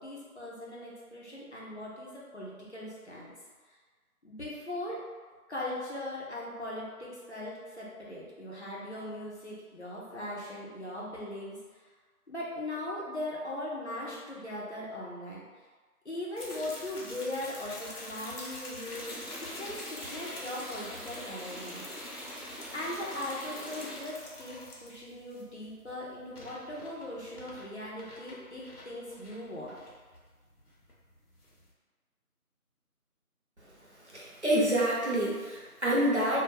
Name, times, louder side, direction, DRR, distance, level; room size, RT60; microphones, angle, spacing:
voice 1, 0.0-3.3 4.2-5.0 5.5-11.6 12.3-15.4 16.0-21.9 22.7-29.8, left 1 dB, 50° left, -6 dB, 0.6 m, -39 dB
sound 1, 16.4-31.7, left 1 dB, 85° left, 0.9 m, -46 dB
sound 2, 18.9-24.0, equal, 5° right, 0.3 m, -44 dB
voice 2, 34.1-36.4, right 1 dB, 50° right, -5 dB, 0.6 m, -27 dB
2.2 x 2.2 x 3.2 m, 1.4 s
figure-of-eight pair, 180°, 45 cm